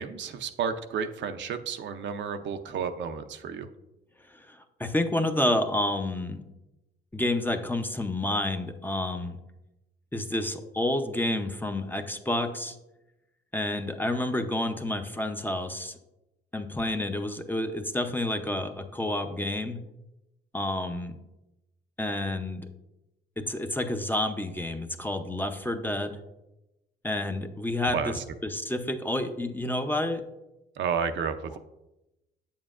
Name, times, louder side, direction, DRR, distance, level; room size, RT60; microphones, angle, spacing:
voice 1, 0.0-3.7 27.9-28.2 30.8-31.6, right 6 dB, 65° right, 8 dB, 0.6 m, -31 dB
voice 2, 4.3-6.4 7.1-9.4 10.1-12.7 13.5-16.0 16.5-19.8 20.5-21.2 22.0-22.7 23.4-26.2 27.0-28.2 28.4-30.2, left 1 dB, 10° left, 7 dB, 0.6 m, -29 dB
8.0 x 7.2 x 2.5 m, 0.93 s
cardioid pair, 90°, 20 cm